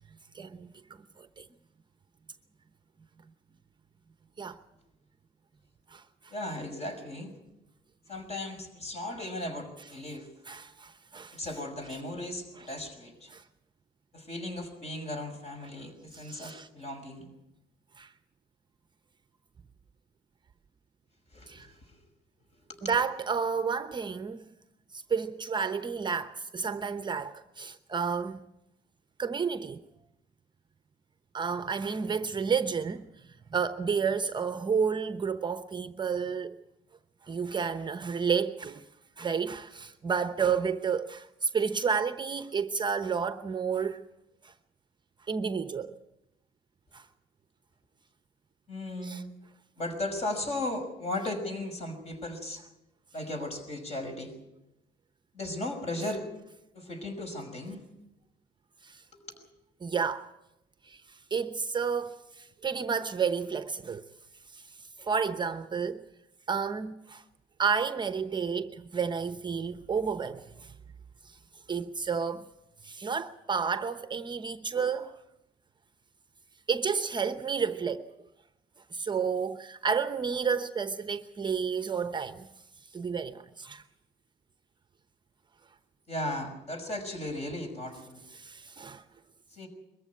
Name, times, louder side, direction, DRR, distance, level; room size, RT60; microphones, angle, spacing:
voice 1, 0.3-0.7 1.2-1.5 4.4-4.6 5.9-6.3 10.5-11.4 12.6-12.7 13.3-13.4 16.1-16.7 18.0-18.1 21.5-21.7 22.8-24.5 24.9-28.4 29.2-29.8 31.3-33.1 33.5-36.5 37.3-38.8 39.2-44.0 44.4-44.5 45.3-45.9 46.9-47.0 49.0-49.2 58.8-59.0 59.8-60.3 60.8-64.0 64.5-66.0 66.5-67.2 67.6-70.7 71.2-71.4 71.7-72.4 72.8-75.2 76.7-78.0 78.9-82.5 82.9-83.8 88.3-89.0, right 6 dB, 25° right, 0.9 m, -31 dB
voice 2, 6.3-7.3 8.1-10.3 11.3-13.3 14.1-17.2 21.3-22.0 22.7-22.8 48.7-49.2 49.8-52.6 53.1-54.3 55.3-56.3 56.7-57.8 59.1-59.2 86.1-88.2 89.5-89.7, left 1 dB, 40° left, 5.9 m, -36 dB
22.0 x 14.0 x 9.5 m
cardioid pair, 110°, 17 cm